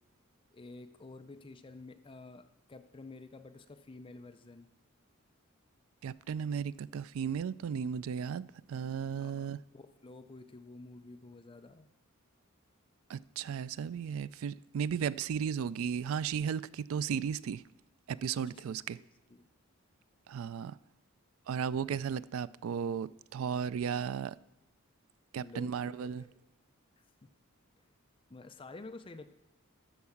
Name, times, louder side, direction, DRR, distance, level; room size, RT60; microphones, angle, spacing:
voice 1, 0.5-4.7 9.2-11.9 18.4-18.6 19.3-19.5 25.4-26.3 27.0-27.3 28.3-29.3, left 3 dB, 25° left, 0.5 m, -50 dB
voice 2, 6.0-9.6 13.1-17.6 18.1-19.0 20.3-20.8 21.5-24.4 25.3-26.2, right 7 dB, 75° right, 0.3 m, -35 dB
13.0 x 4.7 x 7.1 m
head